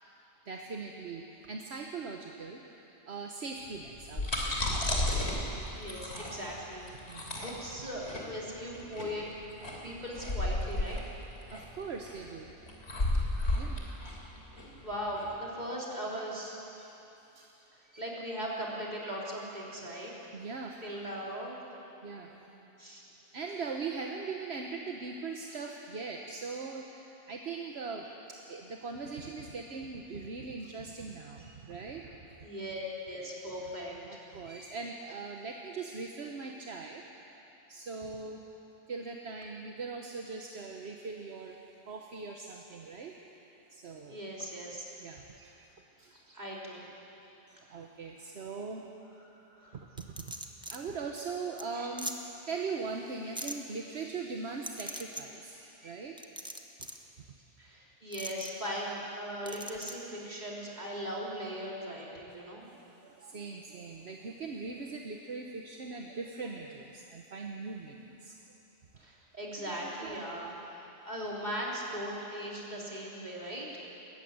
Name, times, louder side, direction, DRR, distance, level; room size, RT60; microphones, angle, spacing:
voice 1, 0.4-4.5 7.1-7.4 11.5-12.5 13.6-13.8 16.8-16.9 17.3-17.5 17.8-18.0 20.3-21.0 22.0-22.5 23.3-32.4 34.0-37.0 37.7-38.5 38.9-41.6 41.9-43.1 43.7-44.2 45.0-45.5 46.0-46.1 47.5-48.9 49.7-50.3 50.7-56.2 62.7-68.4 69.7-70.2, right 4 dB, 65° right, 2 dB, 1.4 m, -41 dB
sound 1, 3.9-15.3, left 1 dB, 70° left, 3.4 m, -33 dB
voice 2, 5.7-9.3 9.8-11.0 13.6-14.0 14.8-16.6 18.0-20.1 20.8-21.6 22.3-23.0 32.4-34.3 44.1-44.9 46.1-46.8 47.7-47.8 49.5-49.8 51.7-51.9 57.6-62.7 69.0-73.8, equal, 40° right, -4 dB, 3.8 m, -39 dB
sound 2, 50.0-50.8 51.2-51.3 51.6-51.7 52.0-52.1 53.3-53.5 54.6-55.2 56.2-57.0 58.1-58.5 59.4-59.9, right 1 dB, 5° right, 1.1 m, -40 dB
21.0 x 15.0 x 9.5 m, 3.0 s
omnidirectional pair, 1.2 m